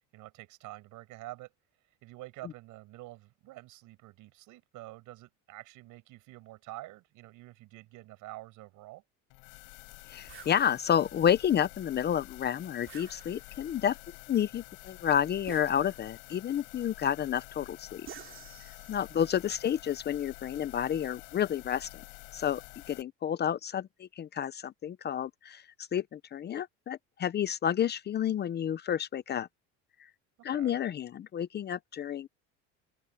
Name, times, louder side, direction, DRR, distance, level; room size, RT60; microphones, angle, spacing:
voice 1, 0.1-1.5 2.0-9.0 19.1-19.2 30.4-30.8, right 18 dB, 70° right, 5.6 m, -48 dB
sound 1, 9.3-23.0, left 29 dB, 85° left, 6.3 m, -49 dB
voice 2, 10.1-14.0 14.3-18.1 18.9-22.0 22.3-22.6 22.9-25.6 25.9-29.5 30.4-32.3, left 9 dB, 30° left, 0.6 m, -30 dB
sound 2, 10.3-10.6 12.9-13.7 15.5-16.3 18.1-19.2, right 9 dB, 40° right, 2.7 m, -49 dB
open air
cardioid pair, 130°, 33 cm